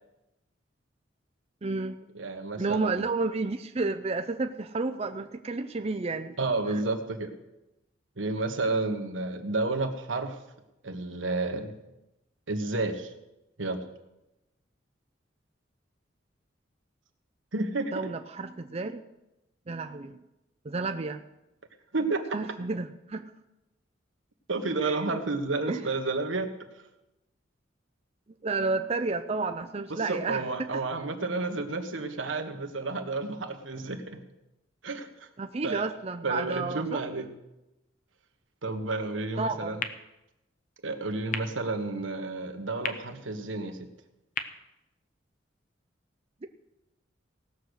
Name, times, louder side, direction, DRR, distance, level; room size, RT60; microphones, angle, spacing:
voice 1, 1.6-2.0 2.6-6.3 17.9-19.0 19.7-20.2 20.6-21.2 22.3-23.3 24.8-25.1 25.7-25.8 28.4-30.8 35.4-37.0 39.4-39.8, right 3 dB, 35° right, 7 dB, 0.5 m, -31 dB
voice 2, 2.1-3.0 6.4-7.3 8.2-10.4 10.8-11.7 12.5-13.1 13.6-13.8 17.5-17.9 21.9-22.4 24.5-26.5 29.9-34.2 34.8-35.3 35.6-35.9 36.2-37.3 38.6-39.8 40.8-43.9, right 3 dB, 85° right, 6 dB, 1.4 m, -31 dB
sound 1, 39.8-45.7, left 6 dB, 45° left, 0.8 m, -41 dB
17.5 x 6.6 x 6.4 m, 0.94 s
head